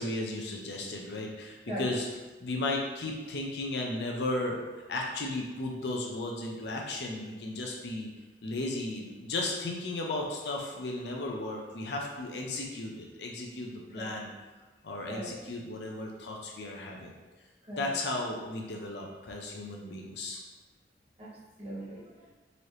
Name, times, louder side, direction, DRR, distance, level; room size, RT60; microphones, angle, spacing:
voice 1, 0.0-2.1 2.4-4.6 4.9-8.1 8.4-14.3 14.8-17.1 17.8-20.4, left 2 dB, 70° left, 0 dB, 0.6 m, -35 dB
voice 2, 15.1-15.4 17.7-18.0 21.2-22.3, right 1 dB, 35° right, -8 dB, 1.2 m, -40 dB
4.0 x 2.9 x 3.2 m, 1.2 s
head